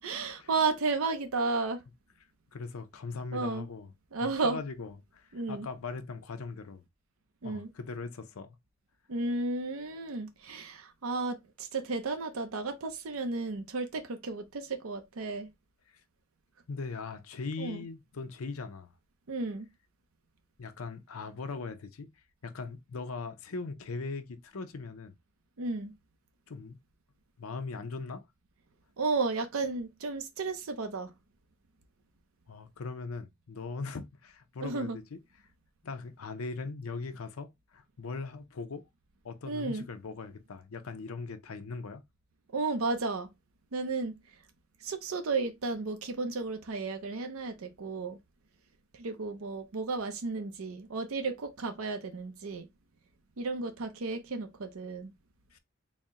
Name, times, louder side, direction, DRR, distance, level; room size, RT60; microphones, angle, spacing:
voice 1, 0.0-1.8 3.3-3.7 4.1-4.6 5.3-5.7 7.4-7.7 9.1-15.5 17.6-17.8 19.3-19.7 25.6-25.9 29.0-31.1 34.6-35.0 39.5-39.8 42.5-43.3 43.7-44.1 44.8-48.2 48.9-52.7 53.4-55.1, right 3 dB, 80° right, 0.6 m, -33 dB
voice 2, 2.5-3.9 4.2-6.8 7.4-8.5 16.7-18.9 20.6-22.1 22.4-25.1 26.5-26.8 27.4-28.3 32.5-35.2 35.8-38.8 39.2-42.0 55.5-55.6, left 4 dB, 90° left, 0.6 m, -40 dB
4.2 x 2.1 x 3.6 m
head